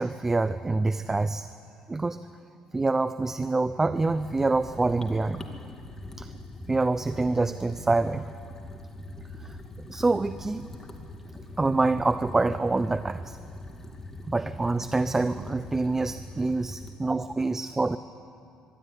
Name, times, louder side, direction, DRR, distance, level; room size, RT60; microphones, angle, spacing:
voice 1, 0.0-1.5 1.9-2.3 2.7-5.5 6.2-6.3 6.7-8.3 9.4-9.6 9.9-10.7 11.6-13.4 14.3-18.0, right 3 dB, 20° right, 13 dB, 0.6 m, -26 dB
sound 1, 3.9-16.9, left 1 dB, 20° left, 2.3 m, -43 dB
24.0 x 12.5 x 9.8 m, 2.4 s
cardioid pair, 85°, 2 cm